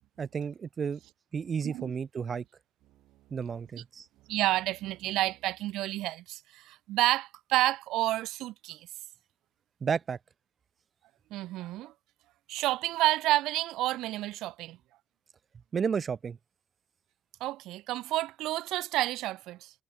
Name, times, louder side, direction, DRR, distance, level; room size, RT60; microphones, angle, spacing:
voice 1, 0.2-1.0 1.3-2.4 3.3-4.0 9.8-10.2 15.7-16.4, right 6 dB, 45° right, 6.8 m, -32 dB
voice 2, 4.3-8.9 11.3-11.9 12.5-14.8 17.4-19.7, right 16 dB, 80° right, 6.6 m, -30 dB
supercardioid pair, 60°, 0 cm